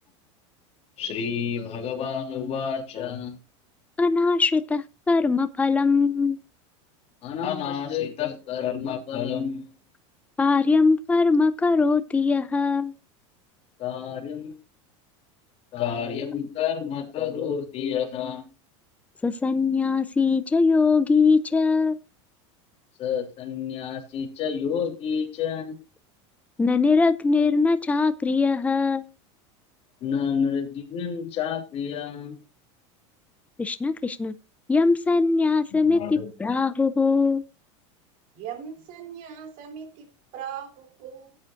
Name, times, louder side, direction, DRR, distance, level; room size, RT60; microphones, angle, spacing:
voice 1, 1.0-3.4 7.2-9.7 13.8-14.6 15.7-18.4 23.0-25.8 30.0-32.4 35.8-36.5, left 7 dB, 40° left, 3.1 m, -29 dB
voice 2, 4.0-6.4 10.4-12.9 19.2-22.0 26.6-29.1 33.6-34.3 34.7-37.4, left 4 dB, 10° left, 0.6 m, -21 dB
voice 3, 38.3-40.1 40.3-41.4, right 8 dB, 55° right, 3.2 m, -39 dB
16.5 x 8.9 x 2.5 m
supercardioid pair, 135°, 16 cm